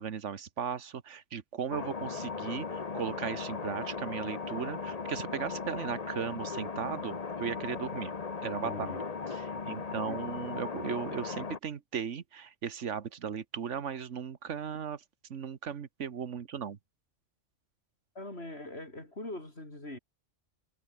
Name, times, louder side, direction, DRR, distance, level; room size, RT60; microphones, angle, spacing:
voice 1, 0.0-8.1 8.4-8.9 9.7-15.0 15.3-16.8, right 7 dB, 85° right, 1.5 m, -37 dB
sound 1, 1.7-11.6, left 5 dB, 35° left, 1.1 m, -37 dB
voice 2, 8.6-9.0 18.2-20.0, left 1 dB, 60° left, 6.8 m, -43 dB
omnidirectional pair, 1.2 m